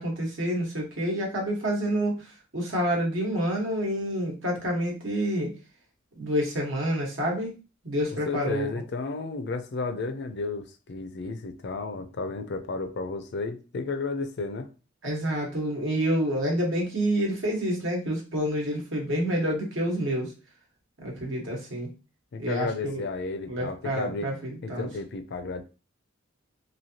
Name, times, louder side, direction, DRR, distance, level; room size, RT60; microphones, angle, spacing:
voice 1, 0.0-2.3 2.5-5.5 6.2-7.6 7.8-8.7 15.0-20.3 21.0-21.9 22.4-23.0 23.5-24.9, equal, 80° right, 1.2 m, -28 dB
voice 2, 8.1-14.7 22.3-24.3 24.6-25.6, left 3 dB, 60° left, 0.4 m, -33 dB
3.1 x 2.7 x 2.7 m
head